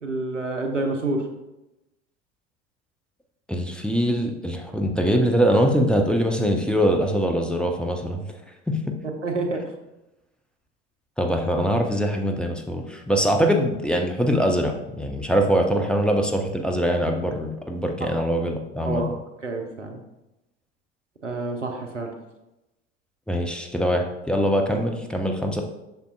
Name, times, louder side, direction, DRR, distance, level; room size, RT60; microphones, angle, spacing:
voice 1, 0.0-1.2 9.2-9.6 18.0-18.1 18.8-19.1 19.4-20.0 21.2-22.1, right 2 dB, 85° right, 3 dB, 0.9 m, -28 dB
voice 2, 3.5-8.2 8.7-8.8 11.2-19.0 23.3-25.6, equal, 5° left, 2 dB, 0.8 m, -23 dB
7.9 x 6.6 x 2.3 m, 0.96 s
figure-of-eight pair, 70°, 36 cm